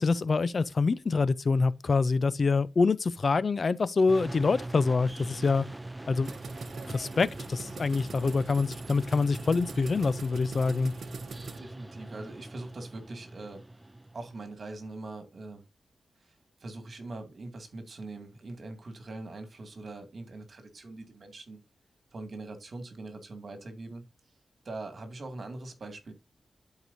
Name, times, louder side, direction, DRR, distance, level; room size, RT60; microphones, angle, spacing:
voice 1, 0.0-5.7 6.1-6.3 6.9-10.9, left 4 dB, 50° left, 0.5 m, -26 dB
sound 1, 4.1-14.5, right 2 dB, 15° right, 0.4 m, -42 dB
sound 2, 6.2-11.6, right 5 dB, 80° right, 0.9 m, -43 dB
voice 2, 11.6-13.6 14.1-15.6 16.2-21.6 22.1-24.0 24.6-26.1, right 2 dB, 50° right, 2.2 m, -42 dB
12.0 x 4.8 x 2.6 m
wide cardioid pair, 110°, 0 cm